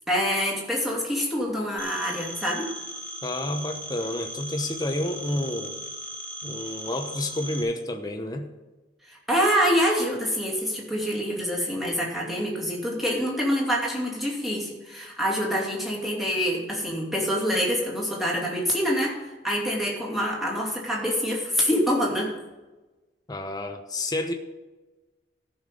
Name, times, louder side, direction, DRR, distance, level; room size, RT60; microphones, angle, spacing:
voice 1, 0.1-2.7 9.1-22.3, equal, ahead, -4 dB, 2.6 m, -26 dB
Telephone, 1.8-7.6, equal, 50° left, 1.7 m, -38 dB
voice 2, 3.2-5.8 6.4-8.5 23.3-24.3, left 1 dB, 20° left, 4 dB, 0.9 m, -30 dB
14.0 x 5.7 x 5.3 m, 1.2 s
head